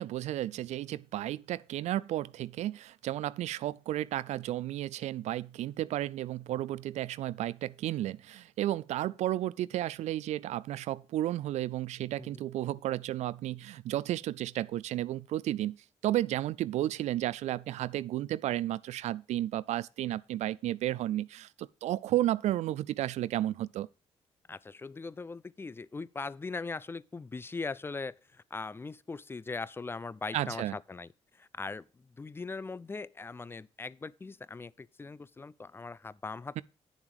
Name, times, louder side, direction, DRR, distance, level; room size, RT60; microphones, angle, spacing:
voice 1, 0.0-15.8 16.0-23.9 30.3-30.8 36.6-36.7, right 14 dB, 80° right, 0.4 m, -33 dB
voice 2, 24.5-31.1 31.3-36.6, left 4 dB, 20° left, 0.4 m, -40 dB
9.2 x 7.2 x 4.8 m
cardioid pair, 100°, 11 cm